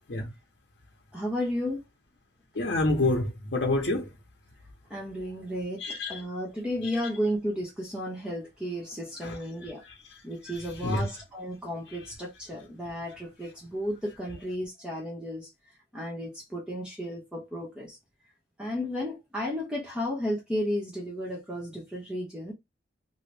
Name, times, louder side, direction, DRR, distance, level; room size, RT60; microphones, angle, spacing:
voice 1, 1.1-1.8 4.9-5.8 6.1-9.8 10.2-15.5 15.9-18.0 18.6-22.5, equal, 5° right, 0.7 m, -33 dB
voice 2, 2.5-4.1 5.8-6.2 9.2-9.9 10.8-11.1, left 2 dB, 65° left, 0.7 m, -28 dB
2.8 x 2.7 x 3.2 m
head